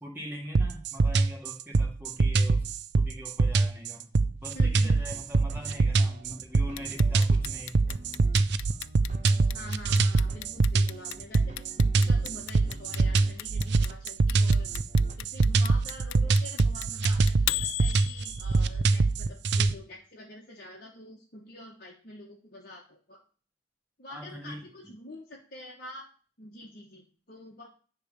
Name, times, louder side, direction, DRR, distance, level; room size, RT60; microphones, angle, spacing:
voice 1, 0.0-2.7 3.0-4.1 4.4-7.8 24.1-24.6, equal, 10° right, -1 dB, 1.9 m, -42 dB
sound 1, 0.6-19.7, right 3 dB, 55° right, 0.5 m, -24 dB
voice 2, 4.5-4.9 9.5-14.7 15.2-23.2 24.0-26.1 26.4-27.7, left 1 dB, 45° left, -2 dB, 1.2 m, -46 dB
sound 2, 5.1-14.0 14.5-16.3, right 2 dB, 35° right, 1.1 m, -50 dB
Clock, 6.8-18.7, left 16 dB, 80° left, 0.3 m, -35 dB
9.9 x 3.4 x 6.6 m, 0.40 s
head